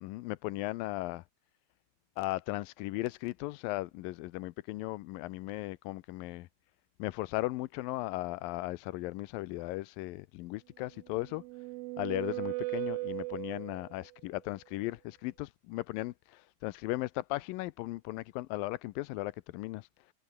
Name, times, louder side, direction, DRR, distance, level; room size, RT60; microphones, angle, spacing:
voice 1, 0.0-1.2 2.2-6.5 7.0-11.4 12.0-19.9, left 19 dB, 85° left, 2.4 m, -37 dB
sound 1, 11.0-14.0, right 23 dB, 85° right, 2.3 m, -38 dB
omnidirectional pair, 4.1 m